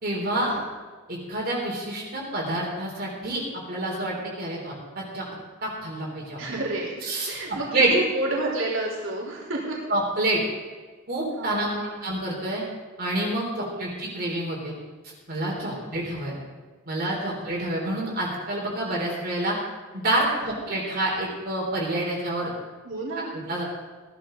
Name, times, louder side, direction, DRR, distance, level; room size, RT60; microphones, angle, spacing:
voice 1, 0.0-0.5 1.1-3.4 3.7-5.2 5.6-6.4 7.0-7.9 9.9-10.4 11.1-11.7 12.0-12.6 13.0-14.7 15.3-16.4 16.9-19.6 19.9-22.5 23.5-23.6, right 1 dB, 50° right, -2 dB, 3.6 m, -28 dB
voice 2, 6.4-7.0 7.3-9.8 11.4-12.0 13.6-13.9 15.7-15.9 16.2-16.4 17.2-17.5 20.4-20.6 22.8-23.3, right 2 dB, 65° right, -4 dB, 3.8 m, -30 dB
17.5 x 13.0 x 3.9 m, 1.4 s
head